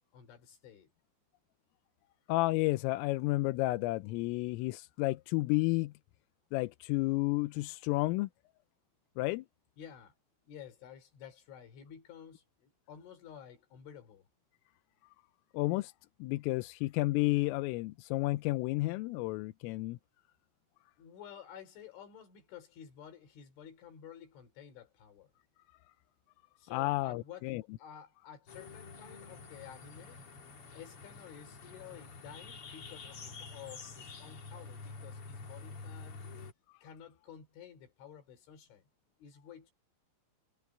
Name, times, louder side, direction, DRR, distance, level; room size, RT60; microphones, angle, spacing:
voice 1, 0.1-0.9 9.8-10.1 10.4-14.3 21.0-25.3 26.6-30.2 30.7-36.2 36.8-38.8 39.2-39.7, left 9 dB, 70° left, 6.2 m, -52 dB
voice 2, 2.3-5.9 6.5-8.3 9.2-9.5 15.5-15.9 16.2-20.0 26.7-27.6, left 20 dB, 90° left, 3.4 m, -31 dB
sound 1, 28.5-36.5, left 4 dB, 45° left, 1.9 m, -48 dB
omnidirectional pair, 5.8 m